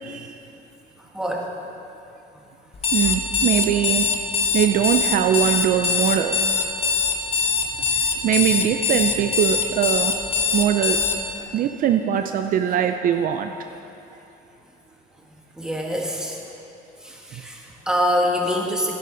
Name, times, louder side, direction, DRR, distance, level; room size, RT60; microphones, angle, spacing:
voice 1, 0.0-0.4 2.9-4.1 4.5-6.4 7.8-10.1 10.5-11.0 11.5-13.5, right 9 dB, 55° right, 6 dB, 0.5 m, -22 dB
voice 2, 1.1-1.5 11.4-11.5 15.6-16.4 17.0-18.9, equal, 5° right, -1 dB, 1.6 m, -25 dB
Alarm, 2.7-11.2, left 5 dB, 35° left, 1.0 m, -22 dB
12.0 x 11.5 x 3.9 m, 2.9 s
cardioid pair, 110°, 17 cm